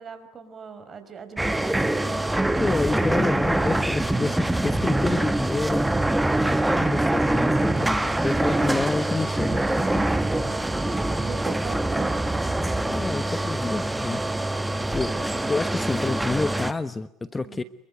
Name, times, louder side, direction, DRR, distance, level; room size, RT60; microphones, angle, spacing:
voice 1, 0.0-2.2 8.4-8.8 9.8-12.5 17.4-17.7, right 6 dB, 35° right, 10 dB, 5.5 m, -41 dB
sound 1, 1.4-16.7, right 1 dB, 10° right, 1.6 m, -24 dB
voice 2, 2.6-5.9 6.5-9.6 9.9-10.0 12.9-14.6 14.9-17.6, left 3 dB, 20° left, 14 dB, 1.1 m, -29 dB
27.5 x 23.0 x 9.4 m, 0.74 s
supercardioid pair, 90°, 0 cm